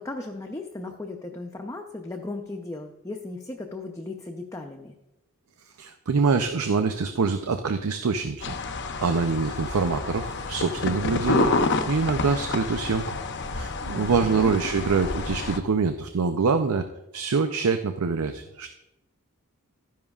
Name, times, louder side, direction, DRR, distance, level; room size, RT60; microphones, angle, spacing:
voice 1, 0.0-4.9 13.9-14.5, left 2 dB, 15° left, 2 dB, 0.6 m, -36 dB
voice 2, 5.8-8.5 9.0-11.5 11.9-13.2 13.5-16.9 17.1-18.7, right 4 dB, 80° right, 7 dB, 0.5 m, -25 dB
sound 1, 8.4-15.6, left 3 dB, 55° left, 0.7 m, -29 dB
12.5 x 10.5 x 2.4 m, 0.92 s
head